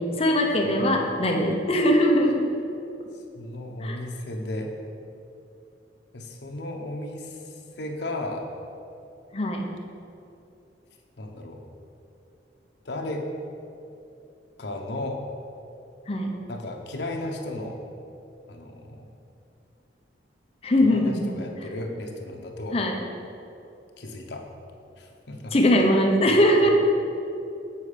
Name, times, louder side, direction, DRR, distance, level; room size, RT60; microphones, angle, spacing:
voice 1, 0.2-2.5 3.8-4.0 9.3-9.7 16.1-16.3 20.6-21.3 22.7-23.0 25.5-26.7, equal, 35° left, 1 dB, 0.7 m, -21 dB
voice 2, 3.1-4.7 6.1-8.5 11.2-11.6 12.8-13.3 14.6-15.2 16.5-17.8 18.5-19.0 20.8-22.8 24.0-24.4 25.0-25.5 26.3-26.4 26.6-26.7, left 1 dB, 75° left, 2 dB, 0.8 m, -34 dB
7.0 x 4.7 x 5.0 m, 2.7 s
head